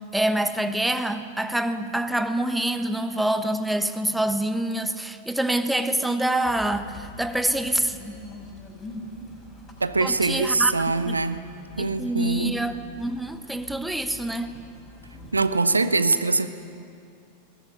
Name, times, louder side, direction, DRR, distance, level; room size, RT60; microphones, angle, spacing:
voice 1, 0.0-8.0 10.0-10.7 11.0-11.2 11.8-14.6, right 1 dB, 5° right, 9 dB, 1.1 m, -26 dB
sound 1, 6.4-15.4, left 1 dB, 20° left, 6.0 m, -44 dB
voice 2, 9.8-11.4 11.8-12.5 15.3-16.5, right 3 dB, 80° right, 11 dB, 1.0 m, -23 dB
20.0 x 19.5 x 9.7 m, 2.5 s
figure-of-eight pair, 90°, 0 cm